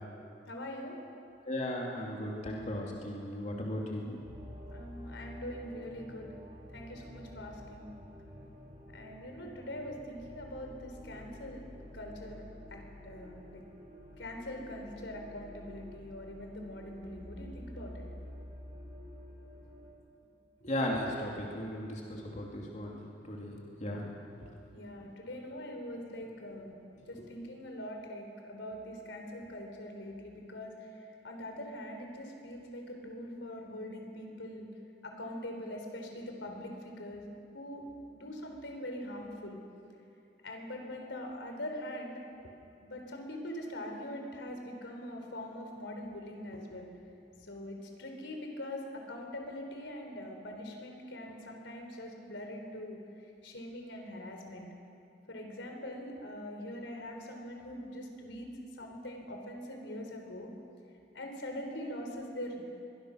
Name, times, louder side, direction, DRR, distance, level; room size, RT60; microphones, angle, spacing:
voice 1, 0.5-0.9 4.7-6.3 6.7-7.9 8.9-11.6 11.9-13.6 14.2-18.1 24.7-26.8 27.1-30.9 31.2-34.7 35.0-37.8 38.1-39.6 40.4-42.5 42.8-46.9 47.5-53.0 53.4-54.7 55.3-58.5 58.8-60.5 61.1-62.6, left 1 dB, 85° left, 3 dB, 3.8 m, -43 dB
voice 2, 1.5-4.2 20.6-24.7 27.1-27.2, left 1 dB, 40° left, -2 dB, 2.7 m, -37 dB
sound 1, 4.2-19.9, left 1 dB, 25° right, 4.1 m, -49 dB
23.0 x 20.5 x 6.4 m, 2.7 s
head